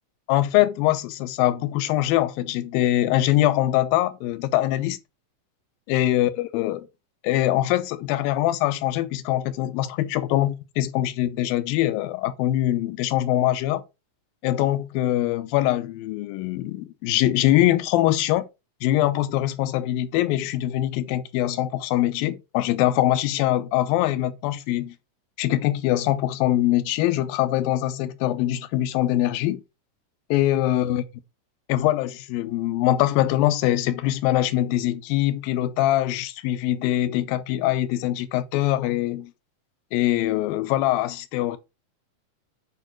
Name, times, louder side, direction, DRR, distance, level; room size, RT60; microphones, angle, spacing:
voice 1, 0.3-5.0 5.9-6.9 7.2-13.8 14.4-18.5 18.8-24.9 25.4-29.6 30.3-31.0 31.7-39.3 39.9-41.6, left 14 dB, 85° left, 2.6 m, -23 dB
9.0 x 5.0 x 4.5 m
omnidirectional pair, 4.0 m